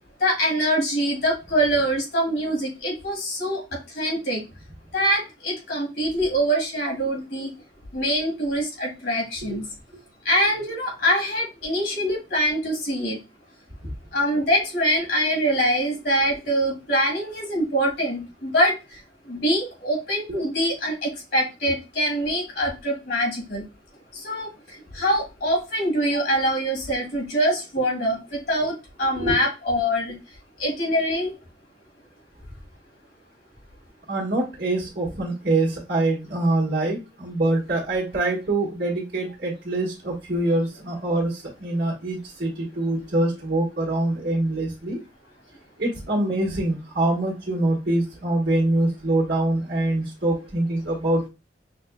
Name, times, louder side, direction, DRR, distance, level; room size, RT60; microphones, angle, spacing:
voice 1, 0.2-3.6 4.0-4.4 4.9-7.5 7.9-9.6 10.3-13.2 14.1-19.0 19.3-23.6 24.1-24.5 24.9-28.7 29.0-30.1 30.6-31.3, equal, 60° left, -2 dB, 1.9 m, -24 dB
voice 2, 34.1-45.0 45.8-51.3, right 2 dB, 65° right, -11 dB, 1.6 m, -24 dB
5.9 x 2.6 x 2.2 m, 0.27 s
head